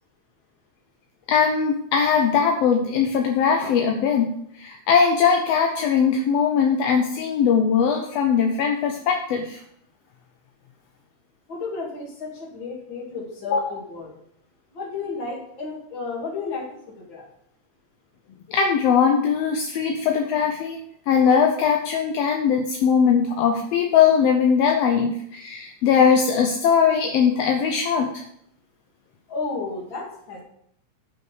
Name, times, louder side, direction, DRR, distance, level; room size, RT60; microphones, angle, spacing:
voice 1, 1.3-9.6 13.4-13.8 18.5-20.8 21.1-28.1, left 6 dB, 70° left, 2 dB, 1.6 m, -20 dB
voice 2, 11.5-14.2 14.7-17.3 29.3-30.4, left 4 dB, 40° left, -1 dB, 2.7 m, -33 dB
7.8 x 5.6 x 6.6 m, 0.70 s
omnidirectional pair, 3.4 m